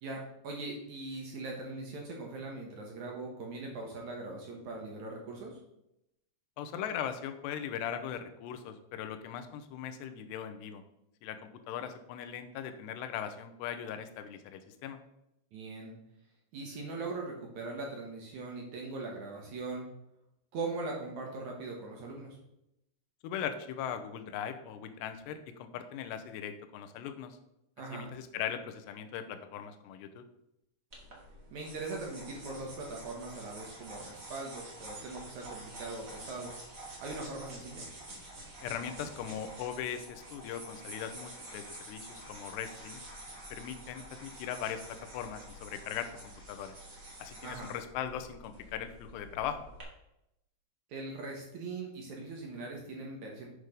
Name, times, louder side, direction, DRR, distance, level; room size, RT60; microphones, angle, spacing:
voice 1, 0.0-5.6 15.5-15.9 16.5-19.9 20.5-22.4 27.8-28.1 31.5-36.5 37.0-37.8 47.4-47.7 50.9-53.5, right 3 dB, 70° right, 0 dB, 1.8 m, -40 dB
voice 2, 6.6-10.8 11.2-11.4 11.7-15.0 23.2-27.4 27.9-30.2 38.6-43.0 43.5-46.1 46.5-46.7 47.2-49.6, left 9 dB, 80° left, 8 dB, 2.7 m, -39 dB
sound 1, 30.9-49.8, right 1 dB, 45° right, 1.0 m, -48 dB
8.2 x 6.2 x 5.2 m, 0.84 s
omnidirectional pair, 5.4 m